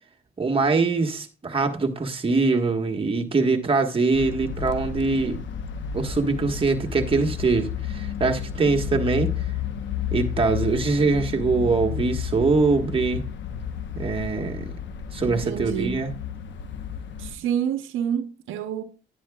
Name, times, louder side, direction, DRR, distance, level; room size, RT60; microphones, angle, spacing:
voice 1, 0.4-5.4 5.9-9.3 10.1-13.2 13.9-14.7 15.1-16.1, right 3 dB, 25° right, 1.5 m, -23 dB
sound 1, 4.1-17.4, left 8 dB, 70° left, 1.0 m, -32 dB
voice 2, 15.2-16.0 17.2-18.8, right 8 dB, 85° right, 0.8 m, -28 dB
10.5 x 10.0 x 2.4 m
cardioid pair, 90°, 20 cm